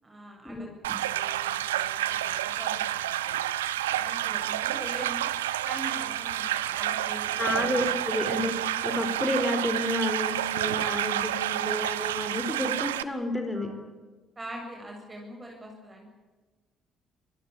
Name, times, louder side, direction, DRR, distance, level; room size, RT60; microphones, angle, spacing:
voice 1, 0.0-0.7 1.1-5.3 5.6-7.7 13.5-13.8 14.4-16.1, right 1 dB, 25° right, 0 dB, 7.7 m, -43 dB
sound 1, 0.8-13.0, right 13 dB, 75° right, 0.7 m, -29 dB
voice 2, 7.4-13.7, left 1 dB, 15° left, 6 dB, 4.4 m, -30 dB
25.5 x 18.0 x 8.8 m, 1.3 s
figure-of-eight pair, 45°, 0 cm